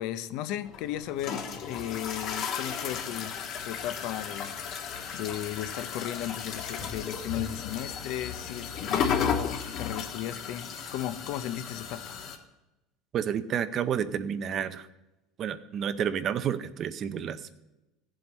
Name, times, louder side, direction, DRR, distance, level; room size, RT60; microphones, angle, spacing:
voice 1, 0.0-3.3 3.6-4.9 5.1-12.2, left 12 dB, 60° left, 0.6 m, -35 dB
sound 1, 0.6-12.4, left 7 dB, 40° left, 1.3 m, -34 dB
voice 2, 13.1-14.9 15.4-17.6, right 8 dB, 35° right, 0.6 m, -30 dB
16.0 x 7.6 x 4.2 m
cardioid pair, 160°, 0 cm